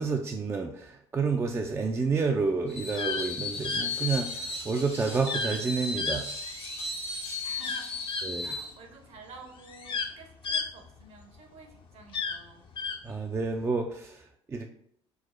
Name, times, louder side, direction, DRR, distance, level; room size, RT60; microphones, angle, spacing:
voice 1, 0.0-6.3 8.2-8.6 13.0-14.7, right 4 dB, 15° right, 3 dB, 0.4 m, -30 dB
Screech, 2.7-8.7, left 2 dB, 90° left, 1.2 m, -36 dB
sound 1, 2.8-3.3 3.6-3.9 5.3-5.6 6.0-6.8 7.6-8.3 9.2-9.3 9.6-11.4 12.0-13.0, left 4 dB, 35° left, 0.5 m, -32 dB
voice 2, 7.4-8.0 8.4-12.7, right 4 dB, 45° right, 3 dB, 0.9 m, -51 dB
4.5 x 2.0 x 4.2 m, 0.69 s
figure-of-eight pair, 55°, 14 cm